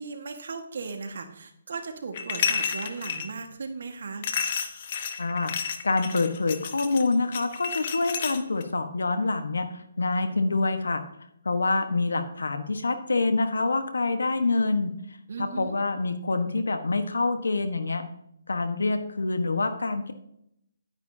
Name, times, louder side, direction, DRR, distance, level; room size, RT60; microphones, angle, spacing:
voice 1, 0.0-4.2 15.3-15.8, right 4 dB, 65° right, 5 dB, 1.7 m, -36 dB
sound 1, 2.1-3.3 4.2-8.6, left 7 dB, 45° left, 1.1 m, -31 dB
voice 2, 5.2-11.0 11.4-14.9 15.4-18.0 18.5-20.1, left 3 dB, 90° left, 8 dB, 1.3 m, -26 dB
11.0 x 9.7 x 2.8 m, 0.75 s
hypercardioid pair, 155°, 0 cm